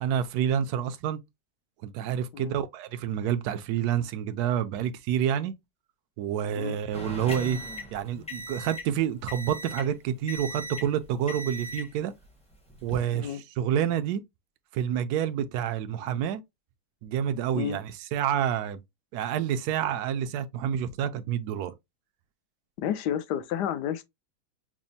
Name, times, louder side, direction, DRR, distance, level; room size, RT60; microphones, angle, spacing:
voice 1, 0.0-1.2 1.8-5.5 6.2-7.6 7.9-12.1 12.8-14.2 14.7-16.4 17.0-18.8 19.1-21.7, right 9 dB, 70° right, 1.0 m, -28 dB
sound 1, 6.9-8.9 9.3-9.9 10.3-10.9 11.3-11.9 12.7-13.0, equal, 5° left, 0.5 m, -38 dB
voice 2, 22.8-24.0, left 9 dB, 75° left, 1.1 m, -30 dB
6.0 x 2.1 x 2.7 m
omnidirectional pair, 2.0 m